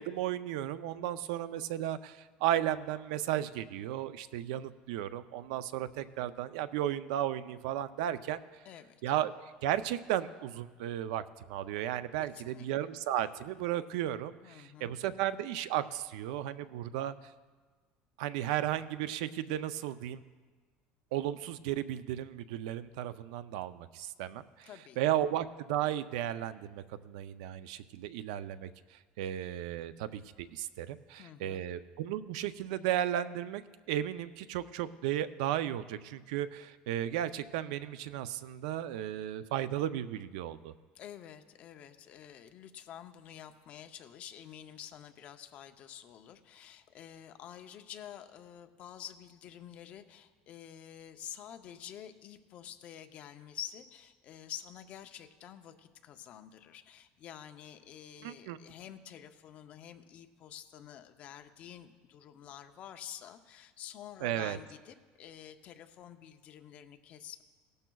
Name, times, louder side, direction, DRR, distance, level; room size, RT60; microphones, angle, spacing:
voice 1, 0.0-8.4 9.0-9.3 9.6-11.2 11.5-17.1 18.2-20.2 21.1-24.7 25.0-33.6 33.9-40.7 58.2-58.6 64.2-64.6, right 12 dB, 80° right, 13 dB, 0.4 m, -34 dB
voice 2, 8.6-9.0 12.2-12.7 14.4-14.9 24.7-25.0 31.2-31.6 40.9-67.4, left 10 dB, 35° left, 7 dB, 0.6 m, -49 dB
17.0 x 12.0 x 2.3 m, 1.4 s
cardioid pair, 170°, 4 cm